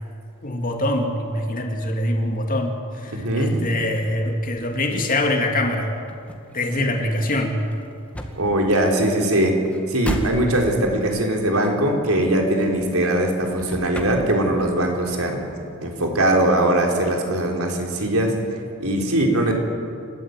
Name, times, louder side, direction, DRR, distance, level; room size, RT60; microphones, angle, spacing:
voice 1, 0.4-5.9 6.5-7.6, left 1 dB, 40° left, 2 dB, 2.7 m, -24 dB
voice 2, 3.1-3.6 8.4-9.5 9.9-15.4 15.8-18.3 18.8-19.5, right 1 dB, 75° right, 1 dB, 4.0 m, -21 dB
sound 1, 4.0-13.3 13.5-14.8 15.1-16.6, equal, 5° left, 1.9 m, -36 dB
28.0 x 13.5 x 9.3 m, 2.6 s
head